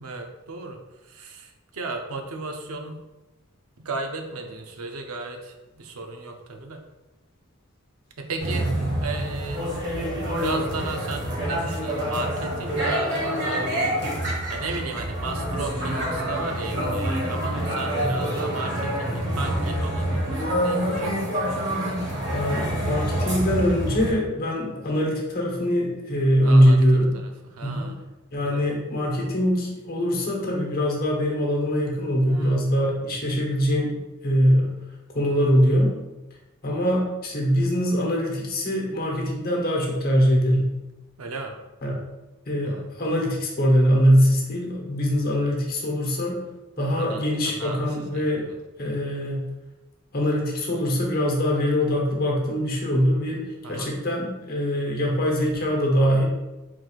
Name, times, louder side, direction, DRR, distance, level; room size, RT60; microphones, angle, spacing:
voice 1, 0.0-3.0 3.8-6.8 8.2-8.7 9.0-9.7 10.3-13.8 14.1-21.9 26.4-26.8 27.1-28.0 28.4-28.7 32.2-32.6 35.3-35.5 41.2-41.5 42.6-42.9 46.8-48.6 53.6-54.0, right 3 dB, 85° right, 4 dB, 0.6 m, -35 dB
sound 1, 8.4-24.1, equal, 55° right, 1.5 m, -27 dB
voice 2, 22.3-27.1 27.6-27.9 28.3-34.0 34.2-34.7 35.1-35.9 36.6-40.7 41.8-42.0 42.5-46.4 46.8-48.4 48.8-49.5 50.1-53.4 53.7-56.2, equal, 45° left, -1 dB, 1.0 m, -22 dB
4.6 x 3.8 x 2.4 m, 1.1 s
head